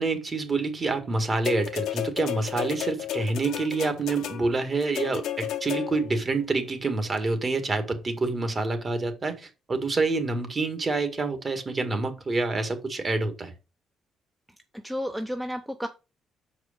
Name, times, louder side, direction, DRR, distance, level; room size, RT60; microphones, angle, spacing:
voice 1, 0.0-13.5, right 3 dB, 35° right, 1.8 m, -27 dB
sound 1, 1.4-6.2 7.2-7.3, left 11 dB, 80° left, 1.1 m, -33 dB
voice 2, 14.7-15.9, equal, 5° right, 0.8 m, -32 dB
6.1 x 4.8 x 5.1 m
cardioid pair, 90°, 0 cm